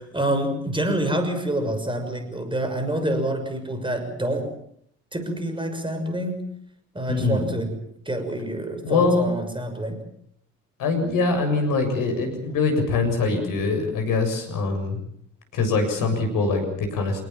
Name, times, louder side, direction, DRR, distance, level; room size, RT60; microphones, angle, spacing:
voice 1, 0.0-4.5 5.1-6.5 6.9-10.0, right 1 dB, 15° right, 7 dB, 6.3 m, -27 dB
voice 2, 7.1-7.5 8.8-9.3 10.8-15.0 15.5-17.2, left 3 dB, 55° left, 5 dB, 7.3 m, -23 dB
27.5 x 19.0 x 7.4 m, 0.69 s
figure-of-eight pair, 50°, 37 cm